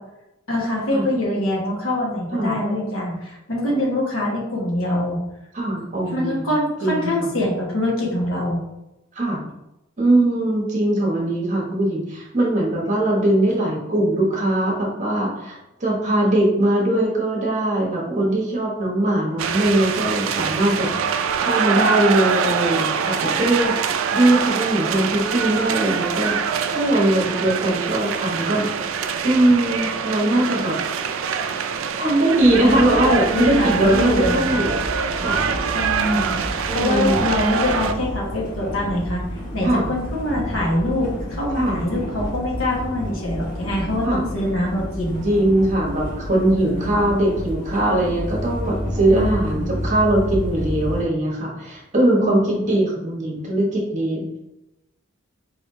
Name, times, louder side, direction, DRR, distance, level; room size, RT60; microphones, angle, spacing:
voice 1, 0.5-5.2 6.1-8.6 32.4-34.6 35.7-39.2 39.5-45.2 46.5-46.9 49.1-49.7 52.2-52.6, left 1 dB, 80° left, -3 dB, 1.4 m, -24 dB
voice 2, 5.5-6.5 6.8-7.3 9.1-9.4 10.0-23.7 24.1-28.7 29.2-30.8 32.0-34.8 35.1-35.4 36.7-37.2 39.6-39.9 41.5-41.8 44.0-44.2 45.2-54.2, right 1 dB, 35° right, -3 dB, 1.2 m, -21 dB
sound 1, 19.4-37.9, right 6 dB, 70° right, 0.3 m, -24 dB
sound 2, 32.4-51.0, equal, 40° left, 1.0 m, -30 dB
4.6 x 3.4 x 2.7 m, 0.92 s
head